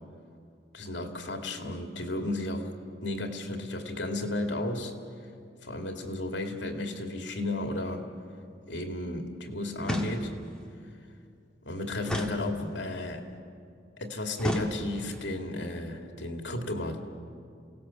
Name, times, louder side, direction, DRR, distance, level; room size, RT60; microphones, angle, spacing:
voice 1, 0.7-2.7 3.0-4.9 5.6-8.1 8.7-10.3 11.6-13.2 14.0-17.0, left 1 dB, 85° left, 4 dB, 2.4 m, -33 dB
sound 1, 9.8-10.6 12.0-13.0 14.4-15.2, equal, 5° left, 1.9 m, -34 dB
29.0 x 18.0 x 7.3 m, 2.4 s
head